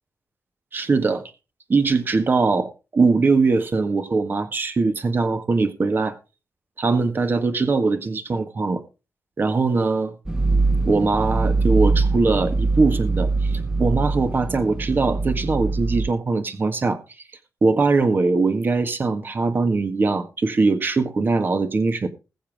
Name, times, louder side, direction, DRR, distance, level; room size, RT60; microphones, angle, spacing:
voice 1, 0.7-1.2 1.7-6.2 6.8-8.8 9.4-10.1 10.8-13.5 13.8-17.0 17.6-22.1, right 3 dB, 35° right, 1.6 m, -21 dB
sound 1, 10.3-16.1, right 3 dB, 10° right, 0.6 m, -22 dB
20.5 x 7.2 x 3.6 m
wide cardioid pair, 145°, 6 cm